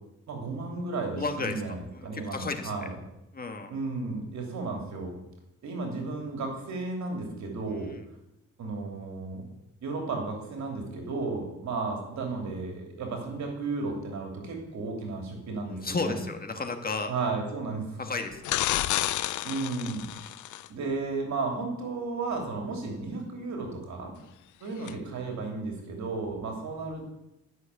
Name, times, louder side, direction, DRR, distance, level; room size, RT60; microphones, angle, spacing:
voice 1, 0.3-3.0 3.7-5.2 5.6-7.9 8.6-9.5 9.8-16.2 17.1-18.0 19.4-20.3 20.7-24.1 24.6-27.0, right 3 dB, 65° right, 2 dB, 2.9 m, -34 dB
voice 2, 1.1-1.6 1.9-2.7 3.3-3.7 15.6-17.1 18.0-18.4 24.8-25.0, left 3 dB, 30° left, 5 dB, 1.7 m, -33 dB
sound 1, 18.4-20.7 24.9-25.0, left 14 dB, 80° left, 0.6 m, -30 dB
13.0 x 6.4 x 8.3 m, 0.88 s
cardioid pair, 90°, 30 cm